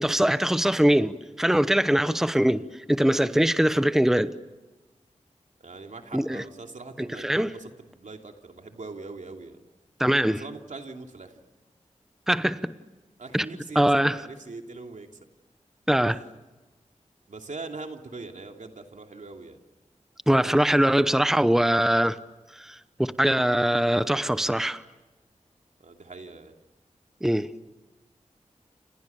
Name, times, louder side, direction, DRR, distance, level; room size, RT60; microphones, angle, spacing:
voice 1, 0.0-2.6 2.9-4.3 6.1-6.4 7.0-7.5 10.0-10.4 12.3-12.7 13.3-13.5 13.7-14.2 15.9-16.2 20.3-22.2 22.6-24.8 27.2-27.5, right 1 dB, 5° right, 0.9 m, -22 dB
voice 2, 5.6-9.6 10.4-11.4 13.2-15.1 16.1-16.2 17.3-19.6 25.8-26.5, right 3 dB, 80° right, 2.8 m, -42 dB
30.0 x 28.0 x 7.1 m
wide cardioid pair, 80°, 13 cm